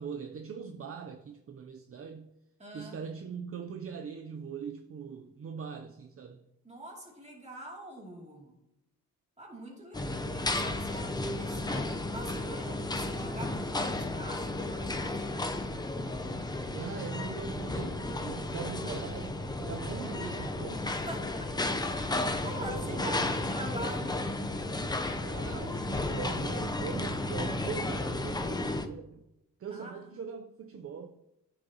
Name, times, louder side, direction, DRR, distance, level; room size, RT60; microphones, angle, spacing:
voice 1, 0.0-2.3 2.7-6.4 16.7-20.9 22.5-23.3 25.2-29.2 29.6-31.1, right 6 dB, 40° right, 0.5 m, -41 dB
voice 2, 2.6-3.0 6.6-8.6 9.4-15.8 20.9-21.6 21.9-24.3 29.7-30.0, right 1 dB, 20° right, 2.5 m, -44 dB
sound 1, 9.9-28.9, left 2 dB, 10° left, 0.5 m, -33 dB
9.6 x 5.4 x 2.8 m
cardioid pair, 80°, 36 cm